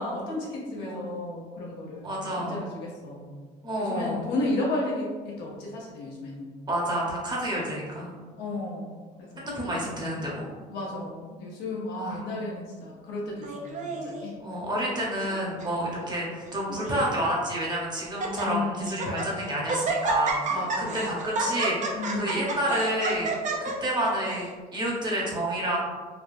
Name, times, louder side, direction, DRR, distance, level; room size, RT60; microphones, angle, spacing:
voice 1, 0.0-3.3 3.7-6.5 8.4-9.5 10.7-14.3 18.4-19.2 20.5-21.3 21.9-22.5, left 2 dB, 85° left, -3 dB, 0.9 m, -33 dB
voice 2, 2.0-2.6 3.6-4.3 6.7-8.1 9.4-10.5 12.0-12.2 14.4-23.3 23.6-25.8, right 1 dB, 25° right, -4 dB, 0.9 m, -29 dB
Laughter, 13.4-14.2 14.9-15.3 15.6-15.7 16.4-17.1 17.6-17.7 18.0-18.5 18.9-19.3 19.7-24.5, right 3 dB, 45° right, 0.5 m, -30 dB
3.4 x 2.2 x 2.6 m, 1.5 s
cardioid pair, 110°, 17 cm